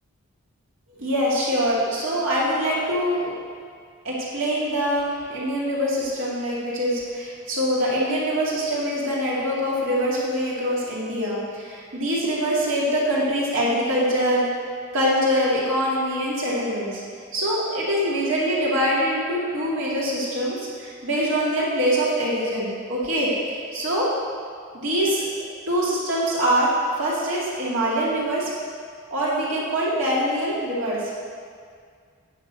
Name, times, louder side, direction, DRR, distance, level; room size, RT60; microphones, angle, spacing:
voice 1, 1.0-3.3 4.0-14.5 14.9-17.0 17.3-24.1 24.7-28.5 29.1-31.1, equal, 60° right, -6 dB, 2.3 m, -24 dB
8.9 x 5.8 x 8.1 m, 2.1 s
head